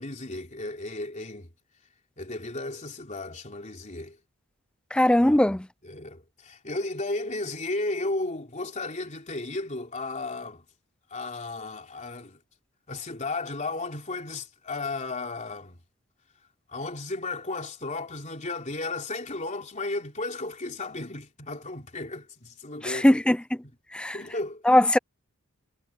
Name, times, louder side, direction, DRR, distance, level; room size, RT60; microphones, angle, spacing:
voice 1, 0.0-1.5 2.2-4.2 5.3-5.4 5.8-10.6 11.1-12.4 12.9-15.8 16.7-23.2 24.0-24.7, left 2 dB, 35° left, 3.4 m, -34 dB
voice 2, 4.9-5.7 22.8-23.4 23.9-24.2 24.7-25.0, left 1 dB, 5° left, 0.3 m, -20 dB
head